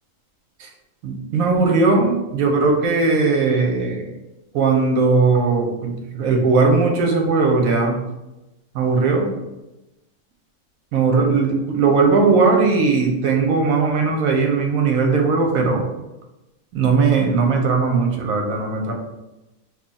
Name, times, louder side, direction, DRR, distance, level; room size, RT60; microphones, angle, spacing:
voice 1, 1.0-4.0 4.5-8.0 8.7-9.3 10.9-15.8 16.7-18.9, right 4 dB, 80° right, 2 dB, 1.1 m, -18 dB
2.9 x 2.3 x 3.9 m, 0.98 s
omnidirectional pair, 1.4 m